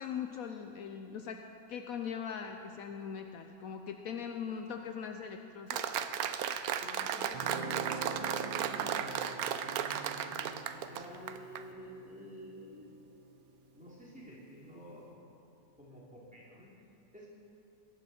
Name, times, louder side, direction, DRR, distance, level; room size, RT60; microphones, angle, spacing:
voice 1, 0.0-1.4 1.7-6.0, left 7 dB, 70° left, 5 dB, 1.1 m, -40 dB
Applause, 5.7-11.6, right 9 dB, 75° right, 1.1 m, -35 dB
voice 2, 6.5-10.6 10.9-12.9 13.7-15.2 15.8-16.7 17.1-17.3, equal, 5° right, -6 dB, 3.0 m, -49 dB
Guitar, 7.3-14.5, right 4 dB, 55° right, 0.6 m, -46 dB
22.0 x 9.9 x 4.4 m, 2.6 s
omnidirectional pair, 1.6 m